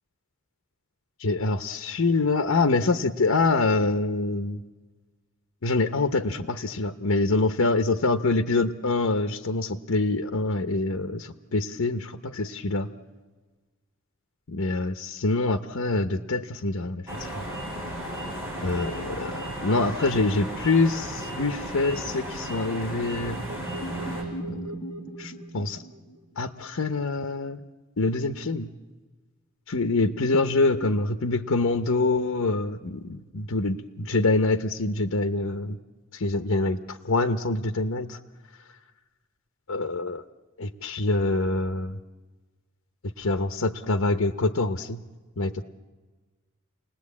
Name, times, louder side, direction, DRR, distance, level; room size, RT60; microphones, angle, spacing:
voice 1, 1.2-4.6 5.6-12.9 14.5-17.3 18.6-23.4 24.5-24.7 25.2-25.8 26.4-27.6 28.0-28.7 29.7-35.8 36.1-38.2 39.7-40.2 40.6-42.0 43.2-45.0 45.4-45.6, left 3 dB, 85° left, 8 dB, 0.9 m, -25 dB
sound 1, 17.1-24.2, right 1 dB, 15° right, 5.6 m, -35 dB
sound 2, 23.1-26.3, right 1 dB, 20° left, 4.8 m, -37 dB
30.0 x 19.5 x 8.5 m, 1.3 s
head